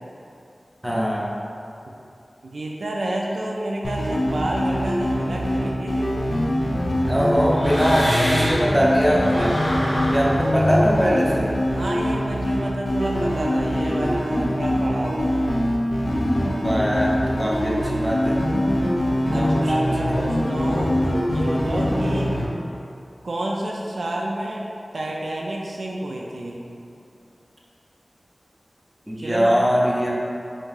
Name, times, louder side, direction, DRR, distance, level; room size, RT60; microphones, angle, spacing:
voice 1, 0.8-1.3 7.1-9.6 10.1-11.6 16.6-18.4 19.2-19.9 29.1-30.3, equal, 10° right, -5 dB, 0.6 m, -22 dB
voice 2, 2.4-6.2 11.7-15.3 19.3-21.0 21.3-22.4 23.2-24.7 24.9-26.6 29.2-29.5, right 1 dB, 80° right, -2 dB, 0.3 m, -29 dB
sound 1, 3.8-22.5, equal, 70° left, 0.5 m, -23 dB
sound 2, 6.1-8.7 9.0-12.1, equal, 40° left, 1.2 m, -30 dB
2.8 x 2.7 x 3.7 m, 2.6 s
wide cardioid pair, 70°, 0 cm